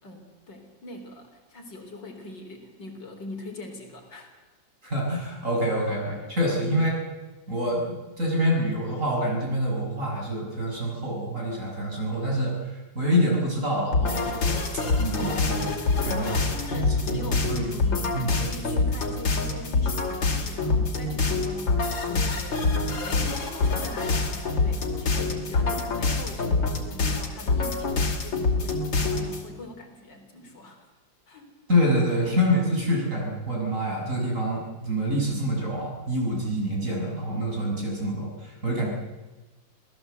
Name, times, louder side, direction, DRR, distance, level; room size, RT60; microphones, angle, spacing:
voice 1, 0.0-4.3 6.5-6.7 16.1-22.7 23.0-30.9 31.3-31.5, left 2 dB, 70° left, 3 dB, 4.4 m, -42 dB
voice 2, 4.8-6.9 7.5-14.4 14.7-15.7 16.0-16.4 16.7-16.8 17.4-17.6 18.1-18.3 31.7-38.9, equal, 40° right, -1 dB, 7.1 m, -26 dB
sound 1, 13.9-29.5, left 3 dB, 85° left, 3.5 m, -26 dB
26.5 x 18.0 x 8.0 m, 1.1 s
omnidirectional pair, 2.0 m